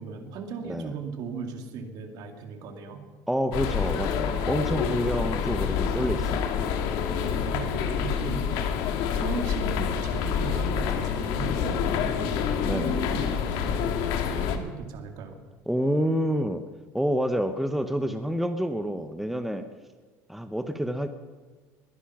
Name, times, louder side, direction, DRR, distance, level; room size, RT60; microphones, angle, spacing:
voice 1, 0.0-3.0 5.2-5.6 7.2-15.4, right 5 dB, 60° right, 5 dB, 2.3 m, -38 dB
voice 2, 3.3-6.5 12.6-13.0 15.7-16.6 16.9-19.6 20.3-21.1, equal, ahead, 8 dB, 0.8 m, -28 dB
sound 1, 3.5-14.6, left 7 dB, 75° left, 1.7 m, -27 dB
21.0 x 10.0 x 5.9 m, 1.3 s
cardioid pair, 130°, 8 cm